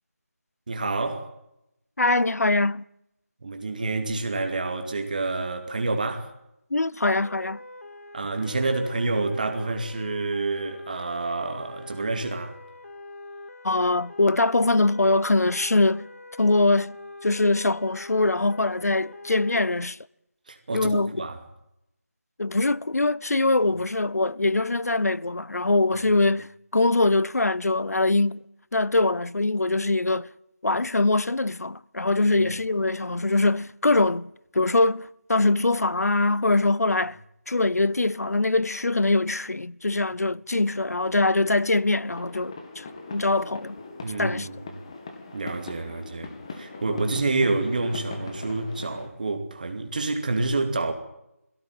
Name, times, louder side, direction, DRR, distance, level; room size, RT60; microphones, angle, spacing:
voice 1, 0.7-1.3 3.4-6.3 8.1-12.6 20.5-21.4 32.3-32.5 44.0-44.7 45.3-50.9, right 3 dB, 30° right, 2.6 m, -28 dB
voice 2, 2.0-2.8 6.7-7.6 13.6-16.1 16.4-17.0 17.2-20.0 20.7-21.1 22.4-26.5 26.7-28.4 28.7-30.3 30.6-37.2 37.5-43.8 44.2-44.5 46.9-47.0, left 2 dB, 90° left, 0.8 m, -23 dB
sound 1, 7.2-19.7, left 2 dB, 65° left, 2.8 m, -44 dB
sound 2, 42.1-49.1, left 3 dB, 20° left, 2.1 m, -40 dB
22.5 x 17.0 x 9.1 m
figure-of-eight pair, 175°, 8 cm